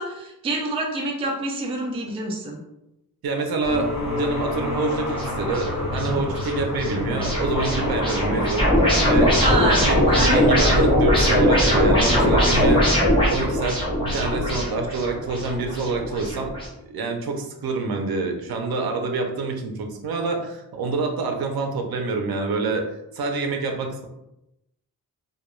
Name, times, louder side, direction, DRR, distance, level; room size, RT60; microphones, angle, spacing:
voice 1, 0.0-2.6 9.4-10.4, right 2 dB, 15° right, -1 dB, 0.3 m, -27 dB
voice 2, 3.2-9.3 9.8-12.9 13.3-16.5 16.8-22.9 23.1-24.1, right 3 dB, 70° right, 3 dB, 0.5 m, -27 dB
sound 1, 3.6-12.9, left 2 dB, 85° left, 1.0 m, -29 dB
sound 2, 5.2-16.7, equal, 15° left, 0.8 m, -21 dB
2.2 x 2.2 x 3.0 m, 0.88 s
wide cardioid pair, 180°, 38 cm